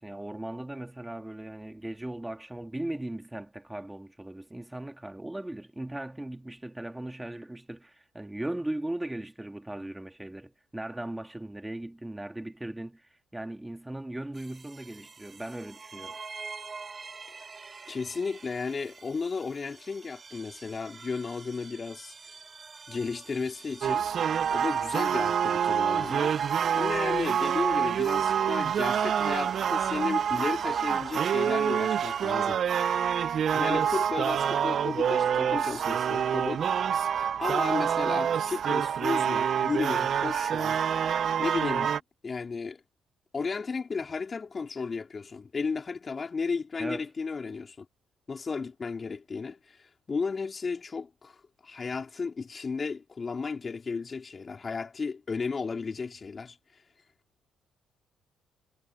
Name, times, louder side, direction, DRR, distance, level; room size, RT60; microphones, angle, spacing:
voice 1, 0.0-16.2 46.8-47.1, right 1 dB, 10° right, 2.1 m, -38 dB
sound 1, 14.3-32.3, right 4 dB, 35° right, 4.8 m, -46 dB
voice 2, 17.9-22.1 22.9-32.6 33.5-36.9 37.4-40.8 41.4-42.0 42.2-42.8 43.3-47.9 48.3-56.6, left 4 dB, 40° left, 4.1 m, -34 dB
sound 2, 23.8-42.0, right 8 dB, 60° right, 0.9 m, -27 dB
supercardioid pair, 60°, 0 cm